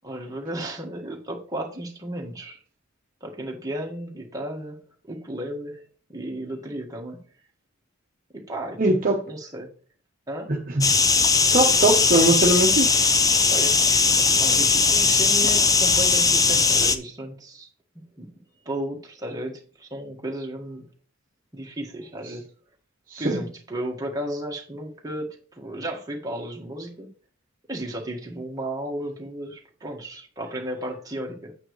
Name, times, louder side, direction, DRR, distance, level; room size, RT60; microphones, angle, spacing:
voice 1, 0.0-2.6 3.2-4.8 5.1-5.8 6.1-7.2 8.3-8.8 9.3-9.7 10.3-10.5 13.5-13.9 14.3-17.7 18.2-18.3 18.6-20.9 21.5-22.4 23.2-25.3 25.5-27.1 27.7-31.6, right 1 dB, 15° right, 1.7 m, -34 dB
voice 2, 8.8-9.2 10.5-10.9 11.5-13.0 23.1-23.5, right 2 dB, 45° right, 1.1 m, -21 dB
sound 1, 10.8-17.0, left 4 dB, 15° left, 0.6 m, -19 dB
8.7 x 8.3 x 3.2 m
head